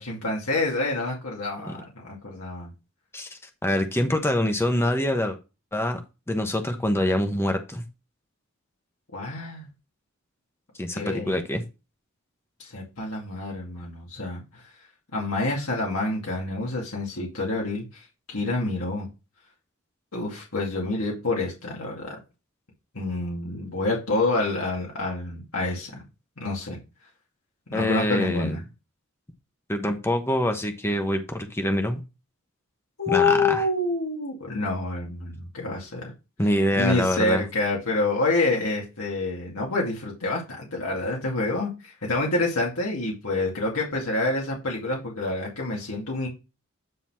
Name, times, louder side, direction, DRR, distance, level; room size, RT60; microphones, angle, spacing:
voice 1, 0.0-2.7 9.1-9.7 10.9-11.3 12.6-14.6 15.1-18.0 18.3-19.1 20.1-22.2 22.9-26.0 26.4-26.8 27.7-28.6 33.0-36.1 36.8-46.3, left 2 dB, 90° left, -2 dB, 2.4 m, -27 dB
voice 2, 3.1-5.4 5.7-6.0 6.3-7.8 10.8-11.6 27.7-28.6 29.7-32.0 33.1-33.6 36.4-37.4, left 1 dB, 10° left, 5 dB, 1.1 m, -25 dB
9.3 x 4.0 x 4.4 m, 0.27 s
head